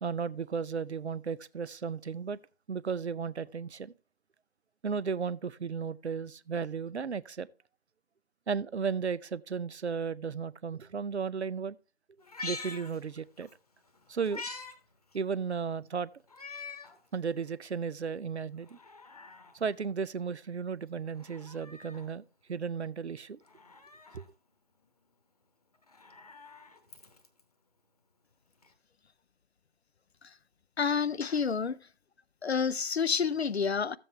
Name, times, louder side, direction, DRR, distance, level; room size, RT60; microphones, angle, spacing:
voice 1, 0.0-2.4 2.7-3.9 4.8-7.5 8.5-11.8 12.4-13.5 14.1-14.4 15.1-16.1 17.1-18.8 19.5-22.2 22.5-23.4 24.1-24.2, right 6 dB, 70° right, 0.6 m, -34 dB
Meow, 12.2-13.5 13.9-14.8 15.1-15.2 16.3-17.0 17.5-17.6 18.6-19.6 21.1-22.1 23.4-24.3 25.7-27.4 28.6-28.7, left 4 dB, 35° left, 1.1 m, -45 dB
voice 2, 30.8-31.8 32.4-34.0, left 6 dB, 65° left, 0.6 m, -29 dB
13.0 x 7.6 x 3.3 m
figure-of-eight pair, 155°, 34 cm